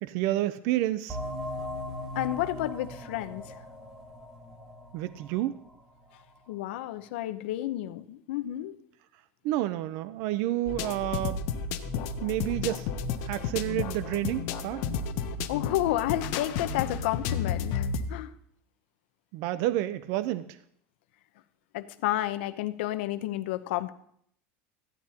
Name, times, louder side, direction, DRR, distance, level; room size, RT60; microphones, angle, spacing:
voice 1, 0.0-1.2 4.9-5.6 9.4-11.6 12.2-12.9 13.2-14.9 19.3-20.6, right 14 dB, 50° right, 15 dB, 0.4 m, -30 dB
sound 1, 1.1-6.4, equal, 10° right, 1.4 m, -39 dB
voice 2, 2.1-3.6 6.5-8.7 15.5-18.3 21.7-23.9, left 15 dB, 90° left, 11 dB, 0.6 m, -31 dB
sound 2, 10.7-18.0, left 6 dB, 50° left, 0.7 m, -32 dB
14.5 x 10.0 x 2.8 m, 0.68 s
cardioid pair, 180°, 6 cm